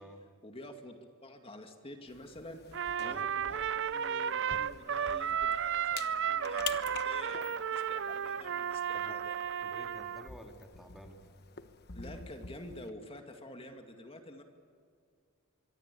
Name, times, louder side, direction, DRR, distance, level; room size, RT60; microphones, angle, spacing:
voice 1, 0.4-9.3 11.9-14.4, left 1 dB, 25° left, 5 dB, 2.4 m, -49 dB
sound 1, 2.1-12.9, left 7 dB, 50° left, 1.2 m, -48 dB
Trumpet, 2.7-10.3, right 8 dB, 60° right, 0.6 m, -33 dB
voice 2, 9.6-11.2, equal, ahead, 3 dB, 2.2 m, -51 dB
25.5 x 23.0 x 8.6 m, 2.2 s
head